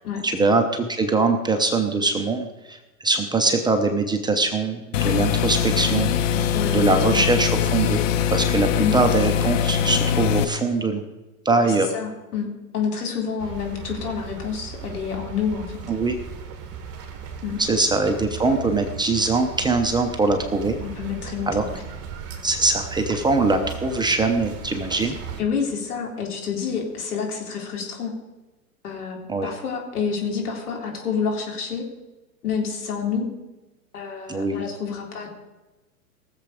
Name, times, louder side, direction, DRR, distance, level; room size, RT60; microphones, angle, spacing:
voice 1, 0.2-6.1 6.7-8.0 8.3-11.0 11.4-11.9 15.9-16.1 17.6-20.8 21.5-21.6 22.4-25.1 29.3-29.5 34.3-34.6, right 3 dB, 10° right, 5 dB, 0.8 m, -22 dB
sound 1, 4.9-10.4, left 9 dB, 55° left, 1.0 m, -22 dB
voice 2, 6.5-7.2 8.8-9.0 11.5-12.5 12.7-15.8 17.4-17.6 20.8-21.8 25.0-25.1 25.4-28.1 28.8-31.8 32.4-33.3 33.9-35.3, left 6 dB, 75° left, 1 dB, 3.6 m, -28 dB
sound 2, 13.4-25.4, right 7 dB, 30° right, 2.0 m, -37 dB
18.0 x 7.3 x 5.0 m, 1.1 s
hypercardioid pair, 110°, 45 cm